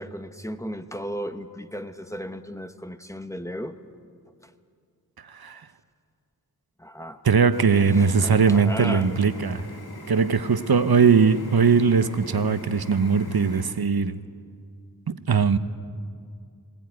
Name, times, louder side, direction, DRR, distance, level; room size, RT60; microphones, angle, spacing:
voice 1, 0.0-3.8 4.4-4.5 6.8-7.2 7.9-9.1, equal, 10° left, 8 dB, 1.1 m, -35 dB
voice 2, 5.2-5.7 7.2-9.7 10.1-14.2 15.1-15.6, right 5 dB, 80° right, 12 dB, 0.8 m, -20 dB
sound 1, 7.5-13.7, left 2 dB, 90° left, 2.0 m, -42 dB
20.5 x 17.5 x 9.4 m, 2.2 s
wide cardioid pair, 60°, 37 cm